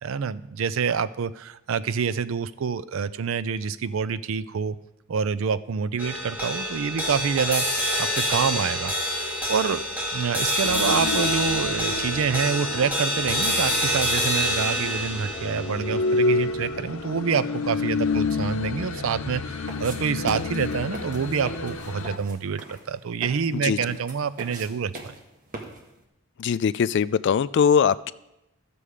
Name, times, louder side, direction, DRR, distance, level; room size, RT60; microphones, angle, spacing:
voice 1, 0.0-4.8 5.1-7.6 8.0-9.8 10.1-25.1, right 6 dB, 70° right, 14 dB, 0.4 m, -27 dB
sound 1, 6.0-18.5, equal, 10° right, 2.5 m, -27 dB
sound 2, 10.6-22.2, left 3 dB, 85° left, 0.7 m, -29 dB
sound 3, 19.7-26.0, right 2 dB, 40° right, 1.4 m, -41 dB
voice 2, 26.4-28.1, left 7 dB, 55° left, 17 dB, 0.3 m, -21 dB
12.5 x 6.9 x 4.9 m, 0.90 s
head